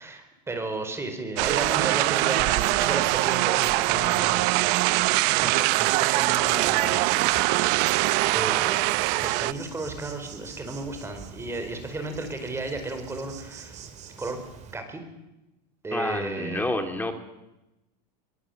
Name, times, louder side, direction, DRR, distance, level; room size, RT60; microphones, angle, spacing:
voice 1, 0.0-4.7 5.4-7.4 8.3-8.9 9.2-13.8 14.2-14.4 14.7-15.0 15.8-16.8, right 2 dB, 10° right, 6 dB, 4.6 m, -34 dB
sound 1, 1.4-9.5, right 21 dB, 55° right, 0.9 m, -23 dB
Insect, 6.2-14.8, right 7 dB, 35° right, 3.9 m, -45 dB
voice 2, 15.9-17.1, left 2 dB, 10° left, 6 dB, 3.2 m, -28 dB
23.5 x 23.0 x 8.0 m, 0.95 s
supercardioid pair, 135°, 21 cm